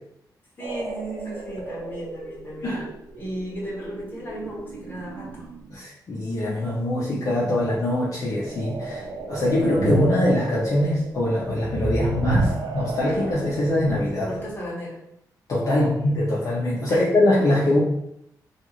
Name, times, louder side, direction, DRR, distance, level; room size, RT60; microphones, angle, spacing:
voice 1, 0.6-2.9 3.1-5.5 14.2-15.0 15.7-15.8 16.9-17.0, equal, 30° left, -5 dB, 1.0 m, -35 dB
sound 1, 0.6-5.7 8.3-14.6, right 2 dB, 85° right, 0.4 m, -31 dB
voice 2, 5.7-14.4 15.5-17.8, left 1 dB, 50° left, -6 dB, 0.6 m, -23 dB
2.5 x 2.4 x 3.0 m, 0.77 s
wide cardioid pair, 115°, 7 cm